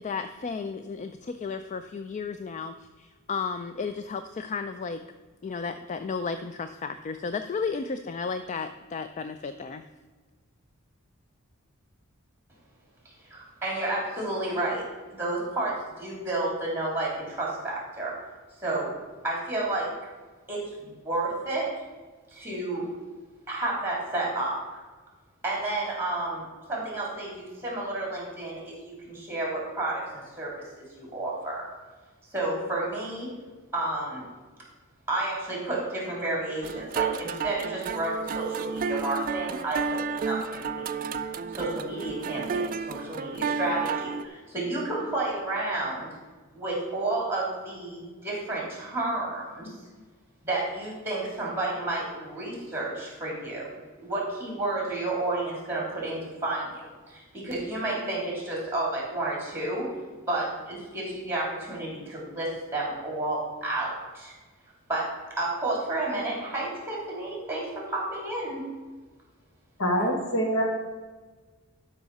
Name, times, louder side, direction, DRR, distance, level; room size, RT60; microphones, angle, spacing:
voice 1, 0.0-5.0 5.4-9.8, left 5 dB, 35° left, 9 dB, 0.3 m, -33 dB
voice 2, 13.3-14.8 15.1-18.1 18.6-18.9 19.2-19.9 20.5-21.7 22.3-22.9 23.5-24.8 25.4-26.4 26.7-31.6 32.3-33.3 33.7-34.2 35.1-40.9 41.5-46.1 46.5-49.7 50.4-53.7 54.0-56.8 57.1-59.9 60.3-63.9 64.1-64.3 64.9-65.1 65.4-68.6 70.0-70.1, right 2 dB, 10° right, -4 dB, 3.2 m, -31 dB
sound 1, 36.6-44.3, right 5 dB, 40° right, 0.3 m, -31 dB
voice 3, 69.8-70.6, equal, 65° left, 0 dB, 1.9 m, -25 dB
12.0 x 5.5 x 4.1 m, 1.3 s
head